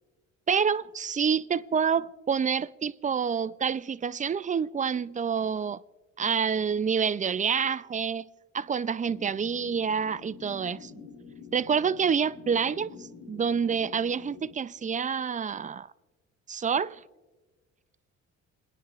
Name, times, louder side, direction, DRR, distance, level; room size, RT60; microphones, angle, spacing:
voice 1, 0.5-5.8 6.2-8.3 8.5-10.9 11.5-15.9 16.5-17.0, right 6 dB, 25° right, 0.4 m, -27 dB
sound 1, 9.0-14.6, left 5 dB, 70° left, 1.4 m, -47 dB
29.0 x 10.0 x 2.4 m
cardioid pair, 90°, 30 cm